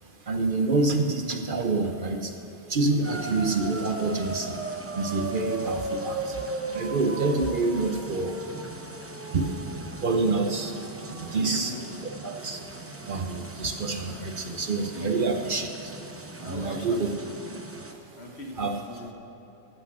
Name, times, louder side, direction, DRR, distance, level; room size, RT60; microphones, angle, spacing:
voice 1, 0.3-2.3 2.7-4.6 4.9-6.4 6.7-8.4 9.3-9.5 10.0-10.8 11.1-12.6 13.0-15.9 16.4-17.1 18.6-18.8, right 3 dB, 50° right, 4 dB, 0.8 m, -27 dB
sound 1, 3.0-17.9, right 2 dB, 15° right, 0.6 m, -37 dB
voice 2, 11.4-12.0 14.9-15.5 16.4-17.7 18.1-19.1, left 1 dB, 60° left, 1 dB, 1.6 m, -40 dB
13.5 x 8.4 x 6.1 m, 3.0 s
omnidirectional pair, 1.2 m